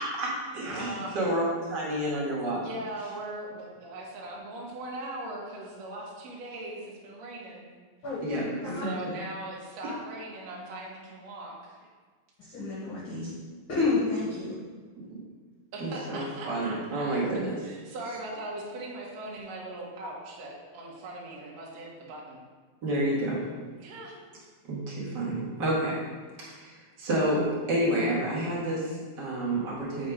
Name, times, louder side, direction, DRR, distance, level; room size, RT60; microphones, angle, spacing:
voice 1, 0.0-2.6 8.2-9.1 9.8-9.9 15.1-15.2 15.8-17.6 22.8-23.4 24.7-26.0 26.4-30.1, right 1 dB, 40° right, -6 dB, 2.0 m, -29 dB
voice 2, 0.7-1.3 2.5-7.6 8.8-11.8 15.7-17.1 17.6-22.4 23.8-24.2, right 1 dB, 60° right, -4 dB, 2.3 m, -40 dB
voice 3, 8.0-8.4 8.7-8.8 12.5-13.3 13.7-14.6, left 3 dB, 55° left, -7 dB, 1.5 m, -29 dB
7.6 x 4.4 x 4.9 m, 1.5 s
omnidirectional pair, 4.0 m